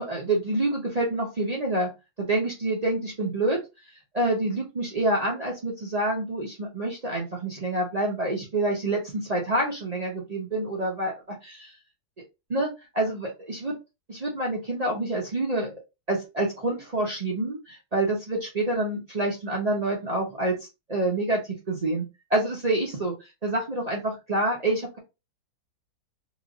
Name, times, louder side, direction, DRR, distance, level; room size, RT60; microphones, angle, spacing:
voice 1, 0.0-1.9 2.2-3.6 4.1-11.7 12.5-13.8 14.1-15.8 16.1-20.6 20.9-21.4 21.7-23.1 23.4-25.0, right 2 dB, 50° right, -3 dB, 0.5 m, -27 dB
2.9 x 2.4 x 2.5 m, 0.25 s
omnidirectional pair, 1.7 m